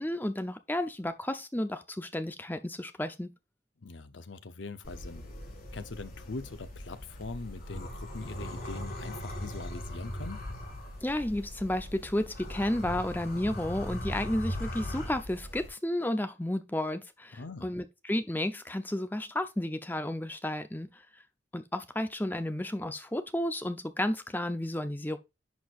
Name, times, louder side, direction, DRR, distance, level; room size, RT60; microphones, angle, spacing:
voice 1, 0.0-3.3 11.0-20.9 21.5-25.2, left 1 dB, 10° left, 0.6 m, -32 dB
voice 2, 3.8-5.2 5.7-10.4 17.3-17.7, left 3 dB, 90° left, 0.8 m, -42 dB
sound 1, 4.8-15.7, left 1 dB, 50° left, 2.5 m, -40 dB
10.5 x 4.6 x 2.5 m
head